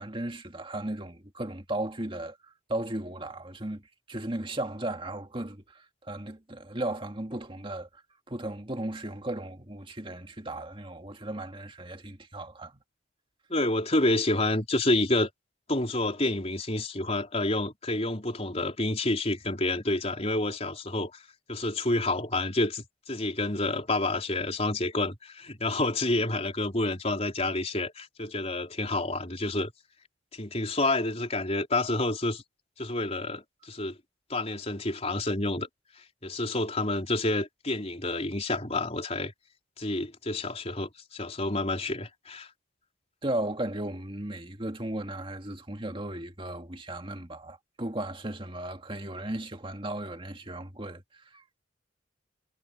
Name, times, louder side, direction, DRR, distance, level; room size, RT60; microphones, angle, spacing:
voice 1, 0.0-2.4 2.7-3.8 4.1-8.0 8.3-12.8 43.2-51.0 51.3-51.6, right 1 dB, 25° right, 2.2 m, -36 dB
voice 2, 13.5-15.3 15.7-21.2 21.5-29.7 30.3-32.4 32.8-34.0 34.3-35.7 36.2-39.3 39.8-42.5, left 2 dB, 35° left, 4.3 m, -29 dB
head